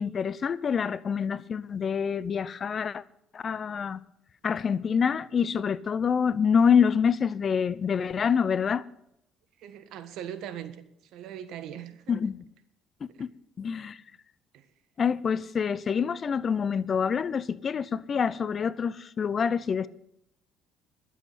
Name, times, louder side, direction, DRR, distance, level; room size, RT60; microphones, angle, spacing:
voice 1, 0.0-3.0 3.3-4.0 4.4-8.8 12.1-12.4 13.2-13.3 13.6-14.0 15.0-19.9, left 6 dB, 45° left, 0.7 m, -26 dB
voice 2, 9.6-10.8 11.1-12.2 13.1-13.3 14.5-14.7, right 10 dB, 75° right, 1.4 m, -40 dB
12.0 x 7.9 x 9.4 m
supercardioid pair, 85°, 0 cm